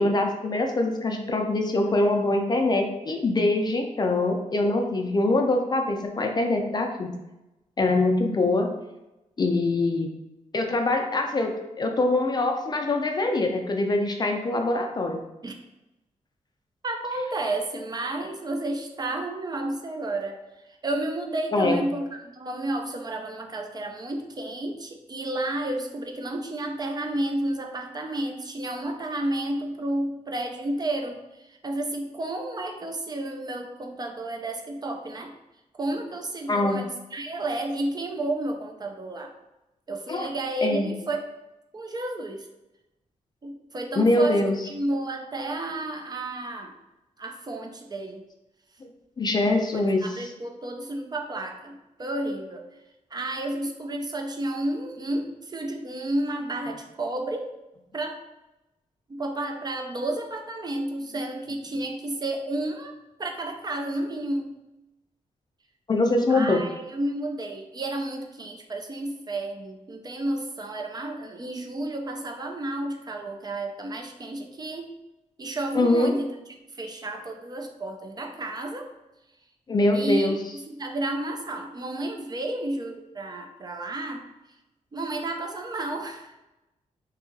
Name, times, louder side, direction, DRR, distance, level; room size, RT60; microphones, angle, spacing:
voice 1, 0.0-7.1 7.8-8.7 9.4-10.1 10.5-15.2 21.5-21.8 36.5-36.8 40.1-40.3 40.6-40.9 43.9-44.6 48.8-48.9 49.2-50.3 65.9-66.6 75.7-76.2 79.7-80.4, left 2 dB, 35° left, 3 dB, 0.4 m, -23 dB
voice 2, 16.8-20.4 20.8-35.3 35.8-39.3 39.9-41.2 41.7-42.5 43.4-46.7 47.2-48.2 49.7-52.6 53.1-57.5 57.9-58.2 59.1-62.9 63.2-64.5 66.3-74.9 75.4-76.3 76.7-78.9 79.9-80.4 80.7-84.3 84.9-86.3, right 1 dB, 35° right, 3 dB, 0.4 m, -31 dB
2.7 x 2.3 x 2.6 m, 0.96 s
cardioid pair, 80°, 13 cm